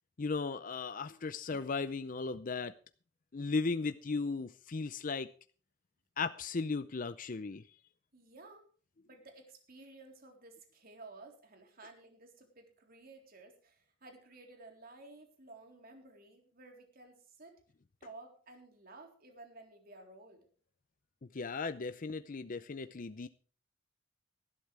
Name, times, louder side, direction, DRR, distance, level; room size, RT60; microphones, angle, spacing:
voice 1, 0.2-2.7 3.3-5.3 6.2-7.6 21.3-23.3, left 4 dB, 45° left, 0.6 m, -36 dB
voice 2, 8.1-8.7 9.1-17.6 18.0-20.5, right 2 dB, 50° right, 3.8 m, -54 dB
18.5 x 13.0 x 3.4 m
head